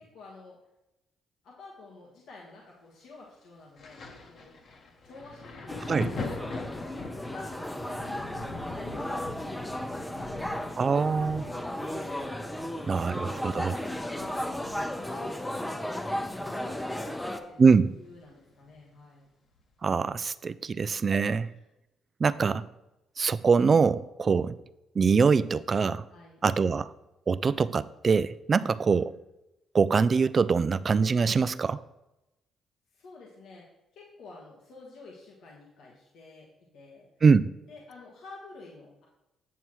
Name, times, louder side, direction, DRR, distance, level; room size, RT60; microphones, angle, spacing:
voice 1, 0.1-0.6 1.4-4.5 5.0-6.0 6.5-8.4 8.7-9.7 10.1-11.5 11.8-12.2 12.5-14.5 15.0-19.3 21.5-21.7 24.3-24.5 26.1-26.4 32.9-33.7 33.9-37.1 37.7-39.0, left 3 dB, 80° left, -3 dB, 1.4 m, -50 dB
Thunder, 3.8-17.1 17.4-18.7 19.6-19.7, left 3 dB, 60° left, 1.3 m, -43 dB
sound 1, 5.7-17.4, left 1 dB, 10° left, 0.7 m, -35 dB
voice 2, 10.8-11.5 12.9-13.7 17.6-17.9 19.8-21.5 22.2-22.6 23.2-24.6 25.0-26.0 26.4-26.9 27.3-29.1 29.7-31.8 37.2-37.5, right 5 dB, 40° right, 17 dB, 0.3 m, -23 dB
8.2 x 7.2 x 3.1 m, 0.94 s
cardioid pair, 90°, 0 cm